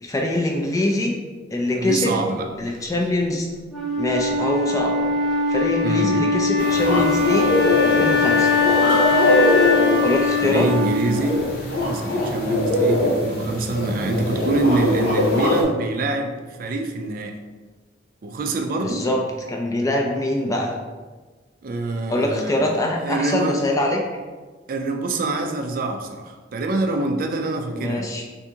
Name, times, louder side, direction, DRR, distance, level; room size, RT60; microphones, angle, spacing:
voice 1, 0.0-1.1 1.5-2.2 2.6-3.5 4.0-5.1 5.5-7.5 7.8-8.6 10.0-10.7 18.8-19.2 19.5-20.7 22.1-24.0 27.7-28.2, left 1 dB, 20° left, 0 dB, 0.3 m, -23 dB
voice 2, 1.7-2.5 5.8-6.1 10.4-11.5 11.8-17.3 18.2-19.1 21.6-22.6 23.0-23.6 24.7-28.1, right 2 dB, 50° right, 4 dB, 0.4 m, -25 dB
Wind instrument woodwind instrument, 3.7-11.7, left 4 dB, ahead, 0.8 m, -21 dB
sound 1, 6.6-15.6, left 1 dB, 70° left, 0.9 m, -22 dB
2.7 x 2.6 x 3.5 m, 1.3 s
head